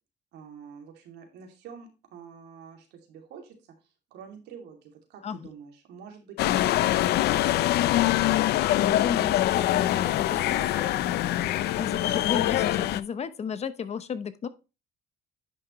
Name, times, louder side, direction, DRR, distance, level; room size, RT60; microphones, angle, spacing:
voice 1, 0.3-3.5 4.1-7.6, right 6 dB, 80° right, 2.8 m, -47 dB
sound 1, 6.4-13.0, left 14 dB, 75° left, 0.6 m, -24 dB
voice 2, 8.8-14.5, left 7 dB, 40° left, 0.9 m, -34 dB
10.5 x 6.0 x 3.1 m
cardioid pair, 110°, 17 cm